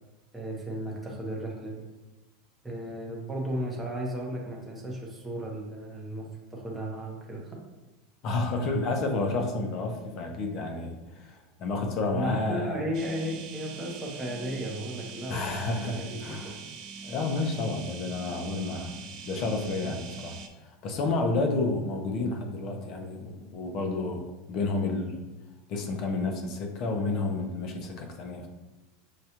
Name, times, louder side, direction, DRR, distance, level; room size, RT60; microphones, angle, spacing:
voice 1, 0.3-1.8 2.6-7.6 12.1-16.5, right 1 dB, 5° right, -3 dB, 0.7 m, -35 dB
voice 2, 8.2-12.8 15.3-16.6 17.0-20.4 20.6-25.2 25.7-28.5, left 3 dB, 35° left, 4 dB, 0.5 m, -30 dB
sound 1, 12.9-20.5, right 5 dB, 40° right, 0.4 m, -43 dB
6.3 x 2.3 x 2.8 m, 1.1 s
supercardioid pair, 170°, 0 cm